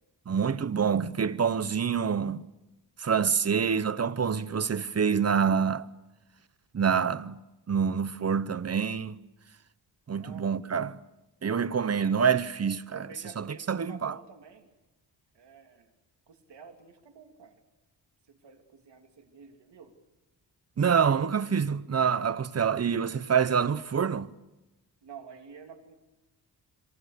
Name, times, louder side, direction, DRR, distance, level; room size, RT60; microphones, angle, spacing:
voice 1, 0.3-2.4 3.0-5.9 6.7-7.4 7.7-9.2 10.1-11.0 11.4-13.1 13.4-14.1 20.8-24.3, right 6 dB, 35° right, 0.8 m, -26 dB
voice 2, 10.2-10.8 11.9-12.2 12.7-14.7 15.3-15.9 16.3-17.6 18.3-20.0 25.0-25.9, right 6 dB, 65° right, 3.1 m, -50 dB
27.5 x 23.5 x 6.8 m
cardioid pair, 105°, 44 cm